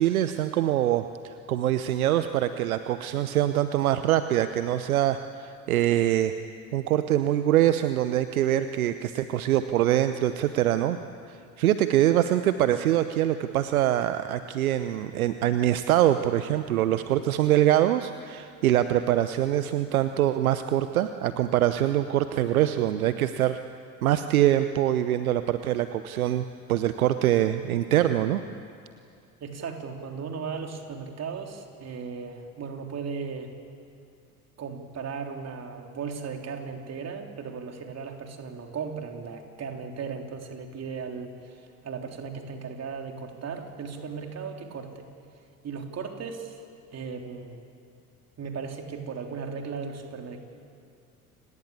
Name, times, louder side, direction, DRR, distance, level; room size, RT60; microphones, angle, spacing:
voice 1, 0.0-6.3 6.7-11.0 11.6-23.6 24.0-28.4, right 12 dB, 70° right, 11 dB, 1.0 m, -24 dB
voice 2, 29.4-33.5 34.6-45.1 45.6-46.6 46.9-47.6 48.4-50.4, right 5 dB, 35° right, 3 dB, 3.8 m, -36 dB
29.5 x 19.5 x 8.7 m, 2.5 s
figure-of-eight pair, 70°, 44 cm